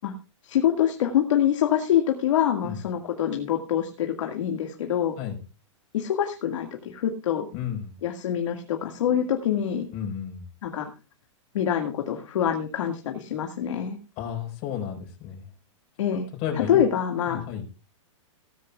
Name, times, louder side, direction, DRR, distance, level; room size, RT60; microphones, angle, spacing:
voice 1, 0.4-5.2 5.9-7.5 8.0-9.9 10.6-10.9 11.5-14.0 16.0-16.3 16.5-17.4, left 10 dB, 70° left, 4 dB, 2.1 m, -25 dB
voice 2, 7.5-7.9 9.9-10.4 14.2-15.5 16.4-16.8 17.3-17.6, left 9 dB, 40° left, 1 dB, 4.8 m, -32 dB
17.5 x 13.5 x 2.4 m, 0.32 s
hypercardioid pair, 140°, 16 cm